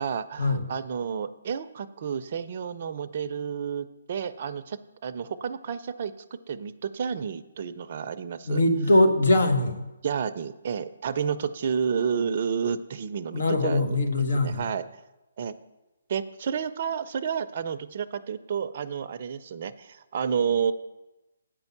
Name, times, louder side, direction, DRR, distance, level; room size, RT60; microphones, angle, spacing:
voice 1, 0.0-8.6 10.0-14.0 14.3-14.9 15.4-15.5 16.1-20.7, right 7 dB, 45° right, 11 dB, 0.5 m, -30 dB
voice 2, 8.5-9.9 13.3-14.6, left 1 dB, 70° left, 6 dB, 1.3 m, -22 dB
8.8 x 5.3 x 7.1 m, 1.0 s
figure-of-eight pair, 145°, 0 cm